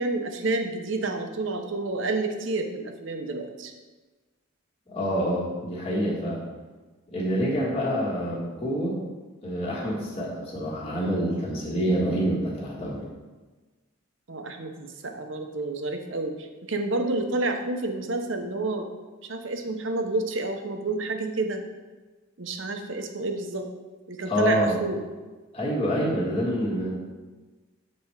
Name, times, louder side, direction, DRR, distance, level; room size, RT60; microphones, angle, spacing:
voice 1, 0.0-3.7 14.3-18.9 19.2-21.6 22.4-23.7 24.1-25.0, right 2 dB, 60° right, 5 dB, 0.8 m, -29 dB
voice 2, 4.9-6.4 7.1-9.0 9.4-13.1 24.3-24.8 25.5-26.9, equal, 30° left, -6 dB, 1.4 m, -27 dB
7.6 x 4.3 x 4.7 m, 1.3 s
head